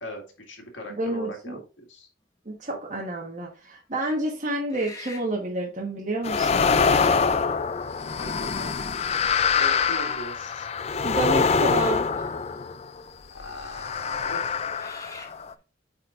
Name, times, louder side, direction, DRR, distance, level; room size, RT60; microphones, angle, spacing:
voice 1, 0.0-2.1 8.2-8.8 9.5-10.7 13.3-14.9, left 1 dB, 80° left, 1 dB, 2.1 m, -40 dB
voice 2, 1.0-1.6 2.4-6.7 11.0-12.3, right 1 dB, 40° right, -2 dB, 1.3 m, -29 dB
sound 1, 2.5-3.0 3.6-3.7 4.6-5.4 6.7-6.8 7.7-8.2 8.6-8.7 9.3-10.0 11.6-11.7 12.0-12.6 13.3-13.4 14.4-15.4, left 3 dB, 20° left, 1.0 m, -45 dB
sound 2, 6.2-13.0 13.7-15.5, left 5 dB, 35° left, 0.4 m, -24 dB
8.9 x 4.4 x 2.5 m, 0.34 s
head